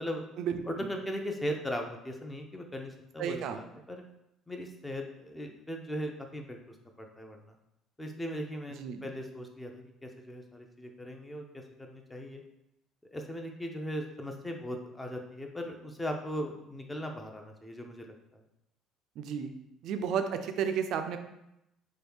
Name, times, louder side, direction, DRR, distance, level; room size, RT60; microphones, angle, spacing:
voice 1, 0.6-4.0 4.5-6.6 7.0-7.4 8.0-12.4 13.1-18.4, equal, 15° left, 3 dB, 0.5 m, -38 dB
voice 2, 3.2-3.6 8.8-9.1 19.2-19.5 19.8-21.2, right 7 dB, 65° right, 7 dB, 0.3 m, -32 dB
3.1 x 2.3 x 3.4 m, 0.86 s
supercardioid pair, 75°, 0 cm